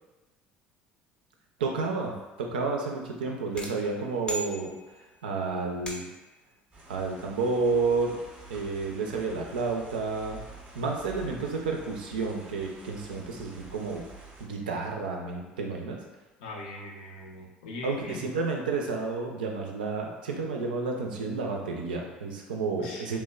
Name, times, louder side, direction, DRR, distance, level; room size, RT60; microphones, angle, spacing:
voice 1, 1.6-2.1 2.4-4.7 5.2-6.0 6.9-8.2 8.5-10.4 10.7-14.0 14.4-16.0 17.8-23.2, right 4 dB, 80° right, 1 dB, 0.4 m, -30 dB
sound 1, 3.6-5.2 5.9-6.4, equal, 20° left, 0.5 m, -39 dB
sound 2, 6.7-14.5, right 2 dB, 30° right, 0.7 m, -48 dB
voice 2, 16.4-18.2 22.8-23.0, left 2 dB, 70° left, -2 dB, 0.6 m, -40 dB
3.1 x 2.1 x 2.3 m, 1.1 s
hypercardioid pair, 60°, 5 cm